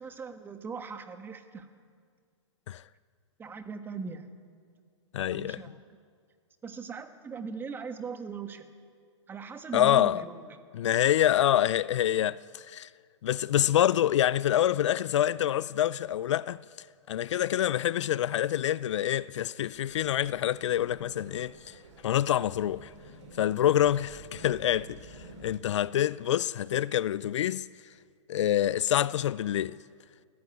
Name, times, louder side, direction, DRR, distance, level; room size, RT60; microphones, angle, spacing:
voice 1, 0.0-1.7 3.4-4.3 5.3-5.9 6.6-8.7 9.3-10.6, right 5 dB, 15° right, 1.4 m, -40 dB
voice 2, 5.1-5.7 9.7-10.2 10.7-12.9 13.2-16.6 17.1-21.7 22.0-22.9 23.4-25.0 25.4-27.7 28.3-29.8, left 11 dB, 65° left, 0.5 m, -26 dB
sound 1, 19.7-25.5, right 2 dB, 65° right, 5.4 m, -50 dB
21.5 x 14.5 x 9.7 m
hypercardioid pair, 140°, 16 cm